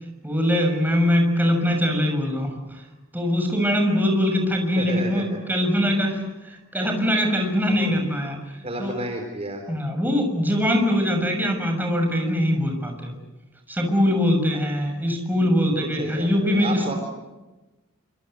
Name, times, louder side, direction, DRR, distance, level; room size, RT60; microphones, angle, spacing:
voice 1, 0.2-2.5 3.1-8.4 8.8-8.9 9.7-13.1 13.7-17.0, equal, 10° right, 3 dB, 6.6 m, -22 dB
voice 2, 4.8-5.4 7.8-7.9 8.6-9.6 15.6-16.9, right 1 dB, 30° right, 4 dB, 4.1 m, -32 dB
27.5 x 26.0 x 8.0 m, 1.1 s
head